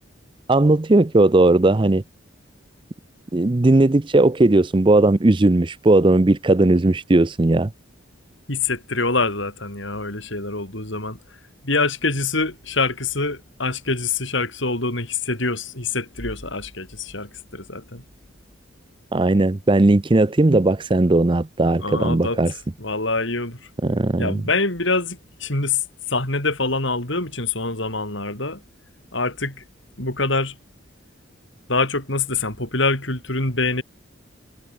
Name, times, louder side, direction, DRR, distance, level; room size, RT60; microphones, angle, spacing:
voice 1, 0.5-2.0 3.3-7.7 19.1-22.5 23.8-24.4, right 2 dB, 25° right, 0.5 m, -17 dB
voice 2, 8.5-11.2 11.6-18.0 21.8-22.4 22.8-23.6 24.2-28.6 29.1-29.6 30.0-30.6 31.7-33.8, left 3 dB, 65° left, 6.3 m, -25 dB
head